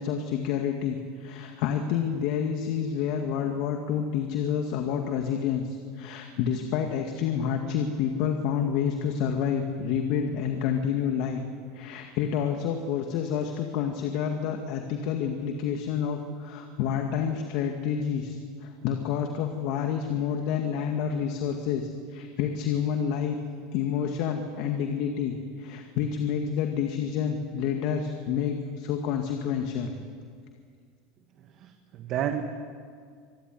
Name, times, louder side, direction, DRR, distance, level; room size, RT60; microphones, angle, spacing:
voice 1, 0.0-11.4 11.7-23.4 23.7-29.9, left 8 dB, 65° left, 4 dB, 2.1 m, -29 dB
voice 2, 31.6-32.5, right 10 dB, 50° right, 6 dB, 1.6 m, -31 dB
25.5 x 15.5 x 9.8 m, 2.1 s
supercardioid pair, 115°, 0 cm